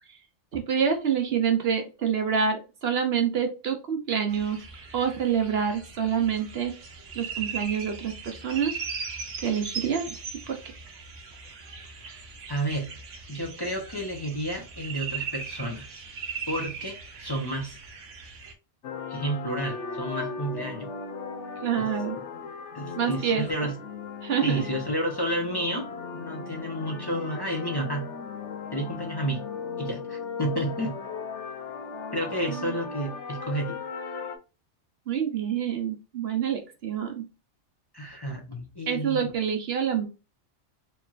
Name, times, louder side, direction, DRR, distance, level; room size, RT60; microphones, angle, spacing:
voice 1, 0.5-4.6 4.9-6.7 7.2-8.8 9.4-10.1 10.5-10.6 21.6-22.2 23.0-23.4 24.2-24.6 32.5-32.7 35.1-37.2 38.9-40.0, right 7 dB, 60° right, 6 dB, 0.9 m, -27 dB
sound 1, 4.3-18.5, right 5 dB, 85° right, 1.2 m, -39 dB
voice 2, 12.5-12.9 13.3-16.0 16.5-17.8 19.1-20.9 21.8-21.9 22.7-23.7 24.4-25.9 26.1-28.1 28.7-29.4 29.8-31.0 32.1-33.8 37.9-39.3, right 1 dB, 20° left, 0 dB, 0.9 m, -31 dB
sound 2, 18.8-34.4, left 5 dB, 75° left, 1.0 m, -37 dB
4.5 x 3.0 x 2.4 m, 0.30 s
omnidirectional pair, 1.2 m